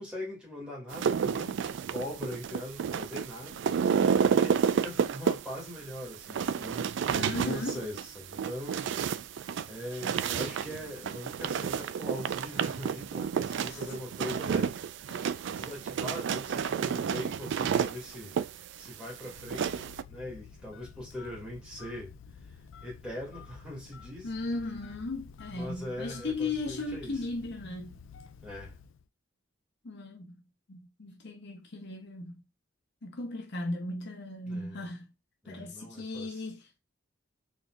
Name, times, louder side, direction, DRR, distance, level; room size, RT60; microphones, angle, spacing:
voice 1, 0.0-3.6 4.3-8.9 9.7-14.8 15.5-18.3 18.8-22.1 22.8-24.3 25.5-27.2 28.4-28.7 34.5-34.8 35.4-36.4, left 1 dB, 5° right, 2.3 m, -41 dB
sound 1, 0.9-20.0, right 7 dB, 65° right, 0.3 m, -30 dB
voice 2, 7.1-7.8 13.6-13.9 15.1-15.3 24.2-28.0 29.8-30.4 30.7-32.3 33.0-35.1 35.5-36.8, left 2 dB, 60° left, 0.8 m, -37 dB
Telephone, 19.4-29.1, left 6 dB, 75° left, 0.4 m, -50 dB
4.2 x 3.6 x 2.4 m
head